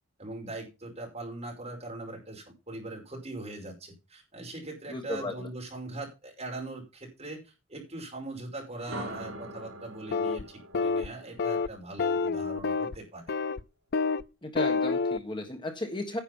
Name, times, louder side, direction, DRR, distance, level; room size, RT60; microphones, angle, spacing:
voice 1, 0.2-13.2, right 2 dB, 35° right, 0 dB, 5.3 m, -41 dB
voice 2, 4.9-5.5 14.4-16.2, left 2 dB, 25° left, 5 dB, 1.4 m, -35 dB
sound 1, 8.7-12.7, right 1 dB, 85° right, 3.5 m, -44 dB
sound 2, 10.1-10.4 10.7-11.1 11.4-11.7 12.0-13.0 13.3-13.6 13.9-14.2 14.6-15.2, left 4 dB, 55° left, 0.5 m, -28 dB
10.0 x 7.7 x 5.5 m, 0.28 s
head